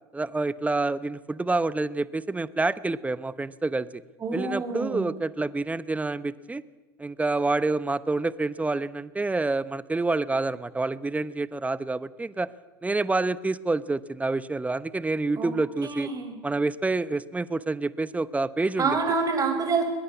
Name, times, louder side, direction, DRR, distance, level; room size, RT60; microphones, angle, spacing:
voice 1, 0.1-4.0 4.3-6.6 7.0-12.5 12.8-16.1 16.4-18.9, right 3 dB, 10° right, 18 dB, 1.0 m, -27 dB
voice 2, 4.2-5.1 15.4-15.5 15.8-16.4 18.8-19.8, right 4 dB, 30° right, 6 dB, 5.8 m, -27 dB
22.5 x 21.5 x 8.5 m, 1.2 s
figure-of-eight pair, 75°, 12 cm